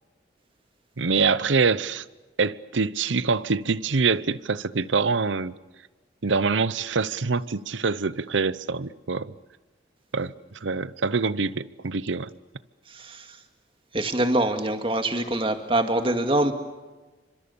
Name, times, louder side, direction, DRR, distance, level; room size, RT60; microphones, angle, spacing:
voice 1, 1.0-2.0 2.4-5.5 6.2-9.3 10.1-10.3 10.6-12.3, right 4 dB, 85° right, 0.8 m, -25 dB
voice 2, 12.9-13.3 13.9-16.5, right 1 dB, 30° right, 2.2 m, -24 dB
29.5 x 25.5 x 7.1 m
head